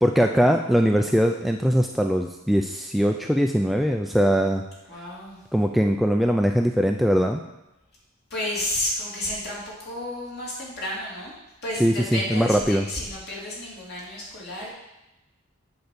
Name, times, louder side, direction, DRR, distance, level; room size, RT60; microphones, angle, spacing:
voice 1, 0.0-4.6 5.5-7.4 11.8-12.8, equal, ahead, 3 dB, 0.3 m, -21 dB
voice 2, 4.9-5.4 8.3-11.3 11.6-14.7, left 1 dB, 50° left, -5 dB, 3.0 m, -31 dB
7.9 x 4.5 x 6.7 m, 0.97 s
head